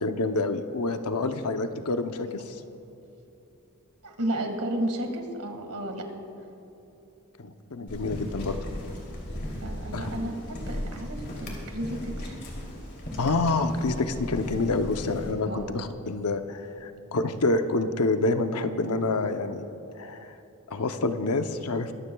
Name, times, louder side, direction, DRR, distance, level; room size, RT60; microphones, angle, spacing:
voice 1, 0.0-2.4 7.4-8.6 9.9-10.1 13.2-19.6 20.0-20.3 20.7-21.9, left 3 dB, 85° left, 8 dB, 0.8 m, -27 dB
voice 2, 4.0-6.0 9.6-12.4 15.4-15.8, right 1 dB, 85° right, 4 dB, 1.9 m, -33 dB
sound 1, 7.9-15.3, left 1 dB, 50° left, 3.0 m, -36 dB
23.0 x 14.0 x 2.3 m, 2.9 s
head